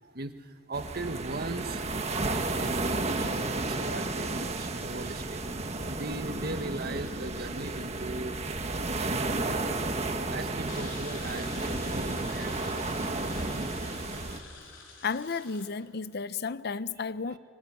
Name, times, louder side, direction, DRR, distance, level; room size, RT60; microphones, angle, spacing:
voice 1, 0.0-9.6 10.3-13.5 17.3-17.4, right 2 dB, 55° right, 7 dB, 1.6 m, -40 dB
sound 1, 0.7-14.4, right 2 dB, 35° right, 1.5 m, -32 dB
sound 2, 10.7-15.7, left 5 dB, 75° left, 4.1 m, -48 dB
voice 2, 15.0-17.4, left 5 dB, 55° left, 15 dB, 0.7 m, -33 dB
25.5 x 23.0 x 9.7 m, 2.4 s
head